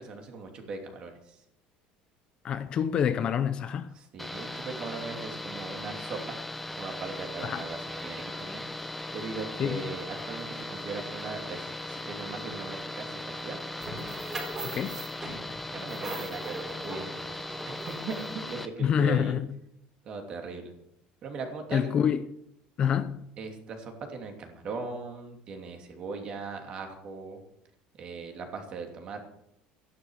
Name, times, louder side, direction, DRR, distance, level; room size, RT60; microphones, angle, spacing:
voice 1, 0.0-1.4 3.9-6.4 6.8-8.6 9.1-13.6 15.7-19.4 20.0-20.7 21.2-21.9 23.4-27.4 28.0-29.3, right 4 dB, 35° right, 2.8 m, -39 dB
voice 2, 2.4-3.9 7.4-7.6 9.6-9.8 14.6-15.0 18.8-19.5 21.7-22.2 22.8-23.3, left 8 dB, 35° left, 0.7 m, -27 dB
sound 1, 4.2-18.7, left 1 dB, 5° left, 0.9 m, -38 dB
sound 2, 13.8-18.5, right 2 dB, 15° right, 4.3 m, -40 dB
14.0 x 11.5 x 6.4 m
cardioid pair, 170°, 3 cm